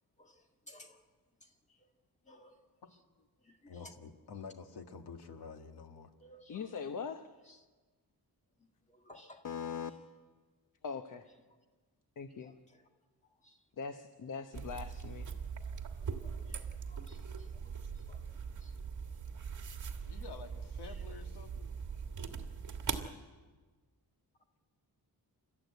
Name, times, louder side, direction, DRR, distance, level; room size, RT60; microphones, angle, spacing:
voice 1, 0.2-1.0 1.4-1.9 2.3-2.6 3.4-3.9 6.2-6.7 7.5-7.6 8.6-9.4 12.4-12.9 13.4-13.6 16.1-18.3 18.6-18.7 20.8-21.0, left 1 dB, 20° left, 1.9 m, -59 dB
voice 2, 2.8-3.3 3.7-6.1 20.1-21.7, left 5 dB, 85° left, 2.0 m, -49 dB
voice 3, 6.5-7.3 9.4-9.9 10.8-11.3 12.2-12.5 13.8-15.3, left 6 dB, 55° left, 1.0 m, -41 dB
sound 1, 14.5-23.1, right 6 dB, 50° right, 1.8 m, -41 dB
29.0 x 14.0 x 9.4 m
wide cardioid pair, 175°, 38 cm